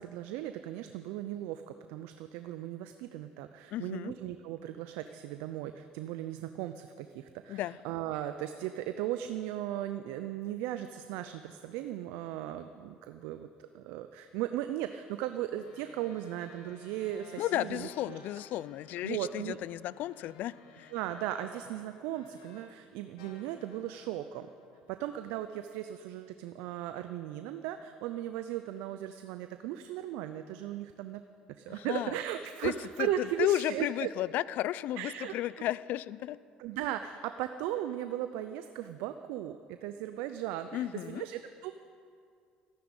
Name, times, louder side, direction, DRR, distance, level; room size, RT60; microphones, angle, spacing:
voice 1, 0.0-13.5 13.7-18.2 19.0-19.6 20.9-24.5 25.0-31.2 31.6-34.1 35.0-35.3 36.6-41.7, right 12 dB, 75° right, 9 dB, 0.6 m, -37 dB
voice 2, 3.7-4.1 7.5-7.8 17.4-20.9 31.7-32.2 32.6-32.7 33.0-36.4 40.7-41.2, left 14 dB, 60° left, 19 dB, 0.4 m, -33 dB
sound 1, 15.4-22.8 23.2-25.6, left 4 dB, 85° left, 1.6 m, -57 dB
14.0 x 9.4 x 9.9 m, 2.3 s
hypercardioid pair, 75°, 3 cm